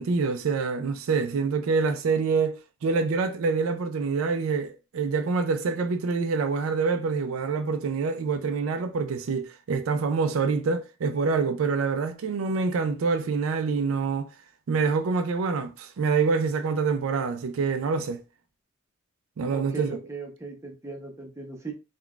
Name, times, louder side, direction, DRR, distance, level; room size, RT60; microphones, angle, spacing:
voice 1, 0.0-14.3 14.7-18.2 19.4-20.0, right 4 dB, 85° right, 0.4 m, -26 dB
voice 2, 19.5-21.7, right 4 dB, 15° right, 0.6 m, -38 dB
3.7 x 2.3 x 2.3 m
head